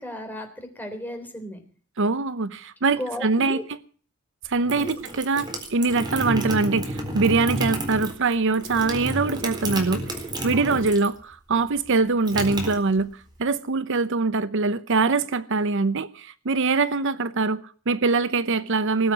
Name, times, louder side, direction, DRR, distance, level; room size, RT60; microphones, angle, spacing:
voice 1, 0.0-1.6 2.9-3.6 4.8-5.0 10.5-10.8, equal, 10° left, 3.7 m, -35 dB
voice 2, 2.0-3.6 4.5-10.2 10.4-13.1 13.4-19.1, right 3 dB, 65° right, 0.8 m, -23 dB
sound 1, 4.4-11.2 11.5-13.4, right 1 dB, 20° right, 4.0 m, -31 dB
20.0 x 8.0 x 8.5 m
head